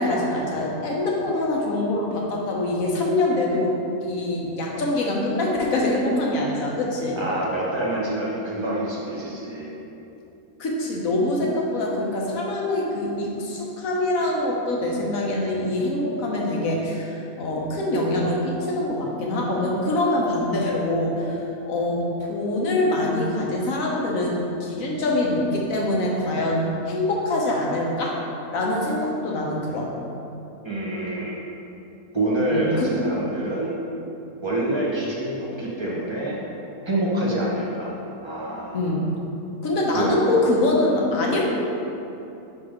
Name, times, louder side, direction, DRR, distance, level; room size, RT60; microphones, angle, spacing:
voice 1, 0.0-3.7 4.0-7.2 10.6-28.1 28.5-29.9 32.5-32.9 38.7-39.0 39.6-41.5, left 1 dB, 65° left, -2 dB, 1.3 m, -24 dB
voice 2, 7.2-9.7 30.6-31.4 32.1-33.7 34.4-36.4 36.8-37.9 38.2-38.8 39.9-40.1, right 1 dB, 20° right, -5 dB, 0.8 m, -26 dB
5.8 x 3.4 x 5.0 m, 2.8 s
omnidirectional pair, 1.6 m